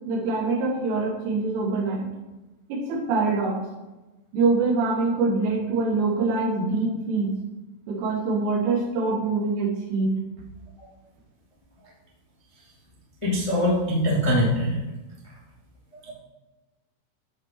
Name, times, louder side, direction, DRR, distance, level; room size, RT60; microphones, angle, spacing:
voice 1, 0.1-2.0 2.7-3.6 4.3-7.3 7.9-10.1, right 3 dB, 75° right, -5 dB, 4.8 m, -24 dB
voice 2, 13.2-14.8 16.0-16.1, equal, 50° left, -7 dB, 0.3 m, -22 dB
13.5 x 5.5 x 4.6 m, 1.1 s
omnidirectional pair, 5.8 m